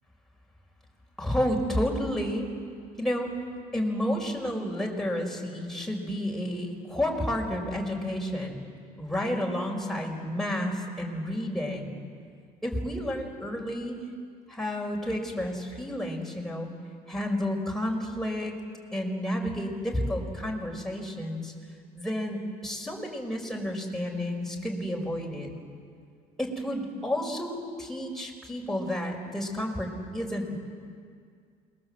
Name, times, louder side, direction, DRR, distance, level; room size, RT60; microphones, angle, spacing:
voice 1, 1.2-2.5 3.0-3.3 3.7-8.6 9.0-11.9 12.6-14.0 14.5-16.7 17.1-18.6 18.9-21.5 21.9-25.6 26.4-30.6, left 1 dB, ahead, -1 dB, 5.4 m, -31 dB
28.0 x 22.0 x 7.9 m, 2.1 s
cardioid pair, 110°, 17 cm